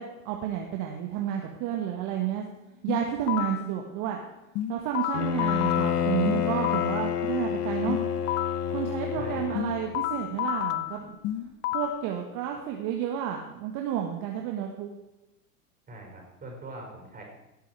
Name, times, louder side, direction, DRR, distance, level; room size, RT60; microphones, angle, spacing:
voice 1, 0.0-2.4 2.8-4.2 4.7-8.0 8.7-11.2 11.7-14.9, right 10 dB, 40° right, 2 dB, 1.7 m, -31 dB
sound 1, 2.9-3.7 4.5-7.1 7.9-8.7 9.5-12.1, left 14 dB, 30° left, 0.7 m, -31 dB
Bowed string instrument, 5.1-10.0, left 8 dB, 85° left, 1.0 m, -29 dB
voice 2, 9.2-9.6 15.9-17.2, right 1 dB, 20° right, 0 dB, 5.4 m, -42 dB
17.0 x 8.2 x 4.7 m, 0.94 s
hypercardioid pair, 100°, 46 cm